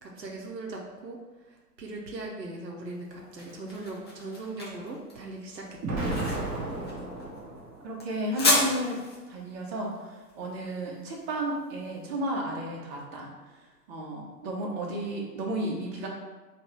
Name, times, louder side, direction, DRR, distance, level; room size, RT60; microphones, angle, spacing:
voice 1, 0.0-6.0, right 2 dB, 80° right, -1 dB, 0.9 m, -40 dB
sound 1, 2.9-11.9, left 1 dB, 20° left, 0.3 m, -32 dB
Explosion, 5.8-8.0, right 2 dB, 20° right, 0.7 m, -32 dB
voice 2, 7.8-9.0 9.3-13.6 13.9-16.1, right 1 dB, 40° right, -2 dB, 1.2 m, -33 dB
3.8 x 2.7 x 4.5 m, 1.3 s
figure-of-eight pair, 110°, 50 cm